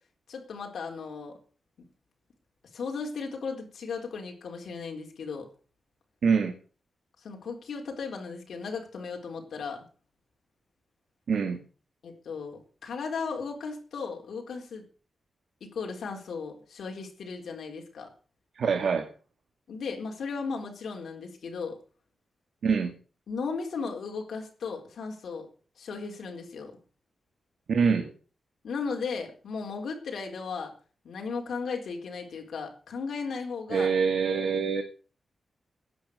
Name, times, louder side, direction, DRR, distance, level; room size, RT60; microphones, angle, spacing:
voice 1, 0.3-1.4 2.7-5.5 7.2-9.8 12.0-14.8 15.6-18.1 19.7-21.8 23.3-25.5 25.8-26.7 28.6-30.7 31.0-33.9, left 5 dB, 75° left, 2 dB, 4.2 m, -36 dB
voice 2, 6.2-6.5 11.3-11.6 18.6-19.1 22.6-22.9 27.7-28.1 33.7-34.8, right 5 dB, 65° right, 6 dB, 2.1 m, -25 dB
16.0 x 10.5 x 6.6 m, 0.39 s
wide cardioid pair, 165°, 0 cm